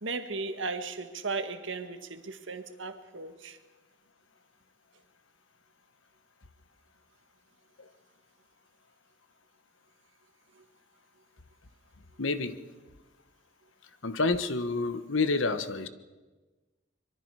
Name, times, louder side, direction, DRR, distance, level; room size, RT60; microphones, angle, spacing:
voice 1, 0.0-3.6, right 3 dB, 75° right, 1.6 m, -36 dB
voice 2, 12.2-12.6 14.0-15.9, left 3 dB, 80° left, 1.2 m, -28 dB
24.5 x 23.0 x 4.8 m
head